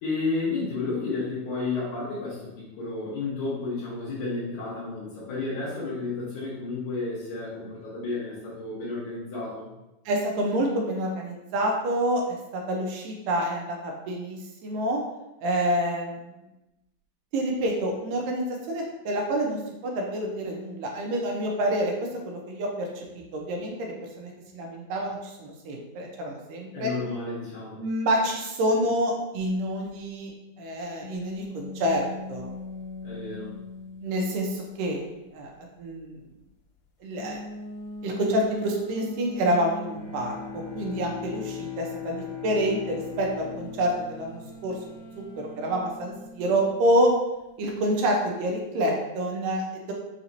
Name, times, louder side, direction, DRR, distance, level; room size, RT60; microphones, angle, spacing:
voice 1, 0.0-9.7 26.7-27.8 33.0-33.5, left 3 dB, 65° left, -7 dB, 2.3 m, -32 dB
voice 2, 10.1-15.0 15.4-16.3 17.3-21.9 22.3-22.9 23.3-26.9 27.8-30.3 30.6-32.5 34.0-35.0 35.3-35.5 35.8-36.2 37.0-37.4 38.0-40.3 40.8-44.7 45.2-47.1 47.6-49.9, right 1 dB, 80° right, 0 dB, 2.2 m, -27 dB
sound 1, 31.0-34.8 37.1-41.5 43.4-47.2, left 2 dB, 85° left, 2.5 m, -41 dB
Bowed string instrument, 39.8-45.3, left 9 dB, 55° right, 2.3 m, -39 dB
5.8 x 2.8 x 2.6 m, 0.96 s
omnidirectional pair, 4.1 m